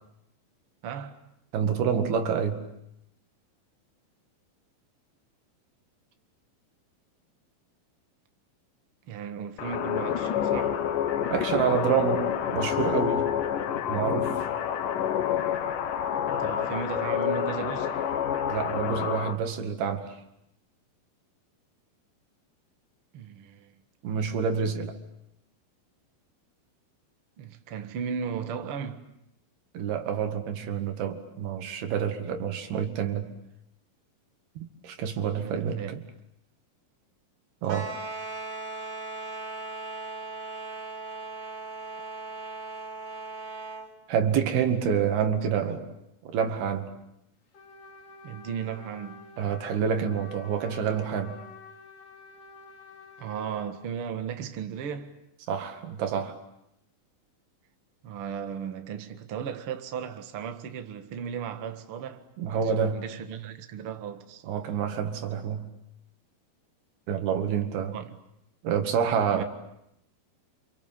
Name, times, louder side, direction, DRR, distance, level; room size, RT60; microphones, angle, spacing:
voice 1, 0.8-1.2 9.1-10.8 16.3-18.0 23.1-23.7 27.4-29.1 35.4-36.0 45.6-45.7 48.2-49.3 53.2-55.2 58.0-64.4 67.9-68.1 69.3-69.4, right 7 dB, 50° right, 1.9 m, -36 dB
voice 2, 1.5-2.6 11.3-13.3 13.9-14.5 18.5-20.2 24.0-25.0 29.7-33.3 34.6-36.0 37.6-37.9 44.1-45.9 46.2-46.9 49.4-51.4 55.5-56.4 62.4-63.1 64.4-65.7 67.1-68.0 68.6-69.4, right 7 dB, 85° right, 4.0 m, -28 dB
sound 1, 9.6-19.4, left 9 dB, 65° left, 2.8 m, -28 dB
sound 2, 37.6-43.9, right 3 dB, 70° right, 5.4 m, -38 dB
Trumpet, 47.5-53.7, left 4 dB, 45° left, 3.8 m, -49 dB
29.0 x 27.0 x 7.5 m
omnidirectional pair, 4.3 m